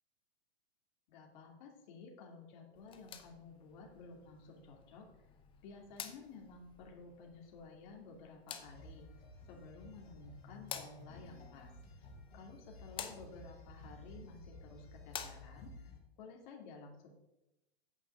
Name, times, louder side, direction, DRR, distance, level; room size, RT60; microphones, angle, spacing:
voice 1, 1.1-5.1 5.6-9.1 9.4-11.7 12.3-17.1, left 4 dB, 45° left, 0 dB, 2.5 m, -53 dB
sound 1, 2.8-15.8, left 8 dB, 15° left, 0.7 m, -52 dB
sound 2, 8.6-16.0, left 1 dB, 70° left, 3.4 m, -54 dB
8.9 x 5.8 x 6.9 m, 0.93 s
hypercardioid pair, 145°, 31 cm